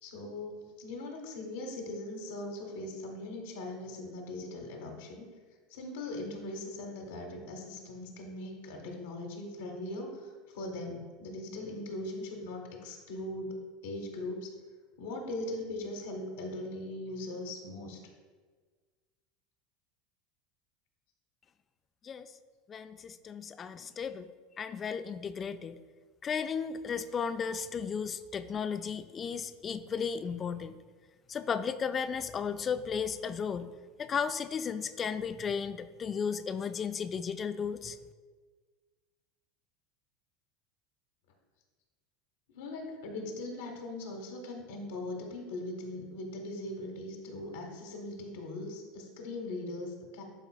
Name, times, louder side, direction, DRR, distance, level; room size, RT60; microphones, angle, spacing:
voice 1, 0.0-5.3 5.7-13.6 13.8-14.5 15.0-18.0 42.5-50.2, left 2 dB, 70° left, 1 dB, 1.1 m, -40 dB
voice 2, 22.7-24.3 24.6-25.8 26.2-30.8 31.3-33.7 34.0-38.0, left 6 dB, 30° left, 12 dB, 0.3 m, -34 dB
11.5 x 3.9 x 2.3 m, 1.4 s
figure-of-eight pair, 80°, 0 cm